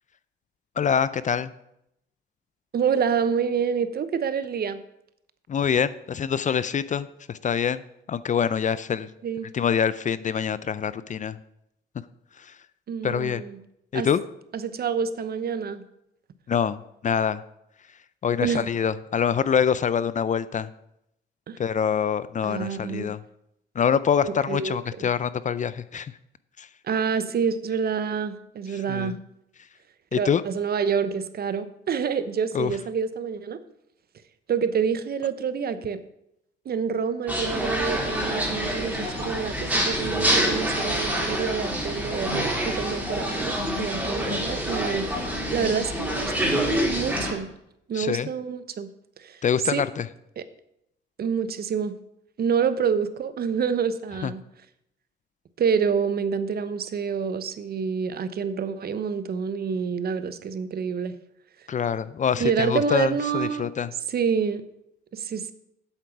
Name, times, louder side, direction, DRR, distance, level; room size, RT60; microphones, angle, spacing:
voice 1, 0.8-1.5 5.5-7.8 8.1-9.1 9.5-11.4 12.4-12.5 13.0-13.4 13.9-14.2 16.5-16.8 17.0-17.4 18.2-20.7 21.6-23.2 23.8-26.1 26.6-26.7 28.7-29.2 30.1-30.4 32.5-32.8 47.9-48.3 49.4-50.1 54.2-54.3 61.7-63.9, left 7 dB, 40° left, 16 dB, 0.5 m, -25 dB
voice 2, 2.7-4.8 9.2-9.5 12.9-13.6 13.9-14.1 14.6-15.8 18.4-18.7 21.5-21.6 22.4-23.1 24.2-25.1 26.8-29.2 30.2-33.6 34.5-36.0 36.7-47.5 47.9-48.9 49.2-49.4 49.7-49.8 50.4-50.5 51.2-52.0 52.4-54.4 55.6-61.1 62.4-63.7 64.1-64.6 65.1-65.5, right 6 dB, 50° right, 13 dB, 0.8 m, -27 dB
sound 1, 37.3-47.3, equal, 5° right, 3.2 m, -27 dB
8.1 x 7.8 x 5.9 m, 0.80 s
cardioid pair, 90°, 20 cm